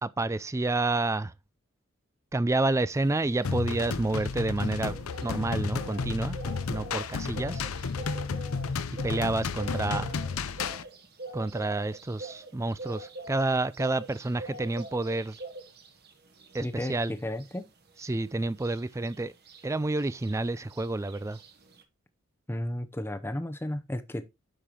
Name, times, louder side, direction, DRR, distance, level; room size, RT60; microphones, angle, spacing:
voice 1, 0.0-1.3 2.3-6.4 6.7-7.6 9.0-10.1 11.3-15.4 16.5-17.1 18.0-19.3 19.6-21.4, right 2 dB, 15° right, 0.3 m, -29 dB
sound 1, 3.0-21.8, right 2 dB, 50° right, 1.4 m, -45 dB
sound 2, 3.4-10.8, left 5 dB, 85° left, 0.6 m, -32 dB
voice 2, 16.6-17.7 22.5-24.2, left 1 dB, 10° left, 0.7 m, -33 dB
8.8 x 6.6 x 2.9 m
head